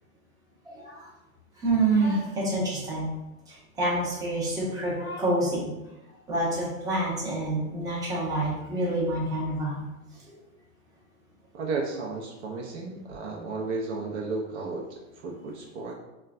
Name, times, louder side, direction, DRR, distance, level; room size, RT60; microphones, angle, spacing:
voice 1, 0.7-1.0 1.6-3.1 3.8-5.7 6.3-9.9, right 2 dB, 10° right, -6 dB, 0.6 m, -27 dB
voice 2, 11.5-15.9, right 3 dB, 50° right, -1 dB, 0.5 m, -33 dB
3.1 x 2.1 x 2.4 m, 0.99 s
hypercardioid pair, 125°, 44 cm